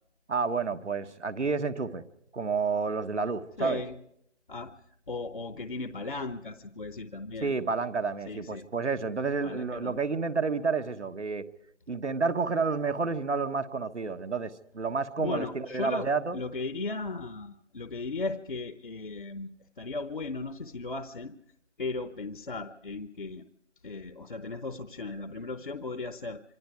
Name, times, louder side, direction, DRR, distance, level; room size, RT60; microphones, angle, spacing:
voice 1, 0.3-2.0 2.3-3.8 7.4-11.4 11.9-16.4, right 4 dB, 75° right, 1.6 m, -30 dB
voice 2, 3.6-4.0 4.5-4.7 5.1-7.5 8.2-8.7 9.4-10.0 15.2-19.5 19.8-21.3 21.8-23.4 23.8-26.4, left 3 dB, 45° left, 0.9 m, -36 dB
27.0 x 22.0 x 4.7 m
figure-of-eight pair, 170°, 36 cm